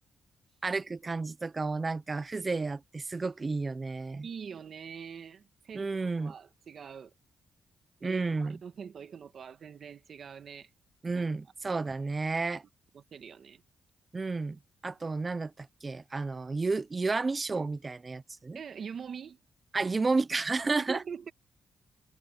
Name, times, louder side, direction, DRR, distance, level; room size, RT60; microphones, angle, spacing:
voice 1, 0.6-4.3 5.7-6.3 8.0-8.6 11.0-12.6 14.1-18.6 19.7-21.0, right 3 dB, 25° right, 0.7 m, -32 dB
voice 2, 4.2-7.1 8.0-10.7 11.1-11.2 12.9-13.6 18.5-19.4 20.8-21.3, right 7 dB, 55° right, 1.6 m, -43 dB
cardioid pair, 130°, 0 cm